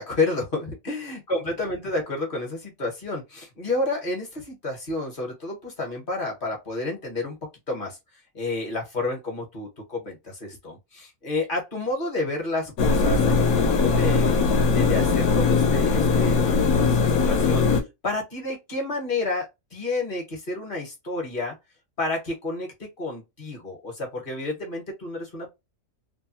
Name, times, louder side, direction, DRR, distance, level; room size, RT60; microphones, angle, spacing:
voice 1, 0.0-7.4 7.7-8.0 8.3-14.4 14.7-17.6 18.0-21.5 22.0-25.5, left 2 dB, 40° left, 1.1 m, -30 dB
sound 1, 12.8-17.8, left 4 dB, 90° left, 1.1 m, -20 dB
2.7 x 2.2 x 2.7 m
omnidirectional pair, 1.5 m